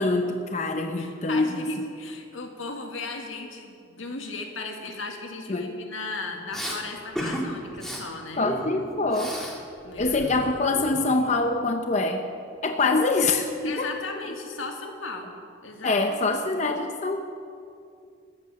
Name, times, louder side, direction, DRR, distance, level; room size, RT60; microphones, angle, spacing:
voice 1, 0.0-1.9 5.5-5.7 8.4-9.4 10.0-12.3 12.6-14.0 15.8-17.2, left 3 dB, 35° left, 5 dB, 0.6 m, -25 dB
voice 2, 1.0-8.5 9.8-10.5 13.6-15.3 15.6-16.4, left 3 dB, 85° left, 3 dB, 1.7 m, -36 dB
Respiratory sounds, 6.5-6.8 7.2-7.4 7.7-8.0 8.4-9.6 9.8-11.3, equal, ahead, 1.8 m, -34 dB
14.0 x 9.3 x 6.9 m, 2.4 s
head